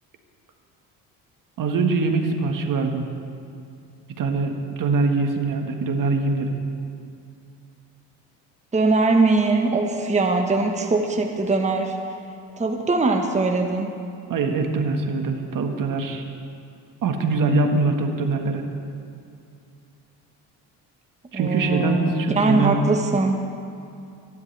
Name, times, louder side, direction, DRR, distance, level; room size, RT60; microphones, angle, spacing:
voice 1, 1.6-3.1 4.2-6.5 14.3-16.2 17.0-18.6 21.3-22.8, right 3 dB, 50° right, 4 dB, 1.6 m, -23 dB
voice 2, 8.7-12.0 12.6-13.9 21.3-23.4, right 3 dB, 15° right, 3 dB, 1.3 m, -21 dB
25.5 x 11.0 x 3.4 m, 2.5 s
supercardioid pair, 80°, 41 cm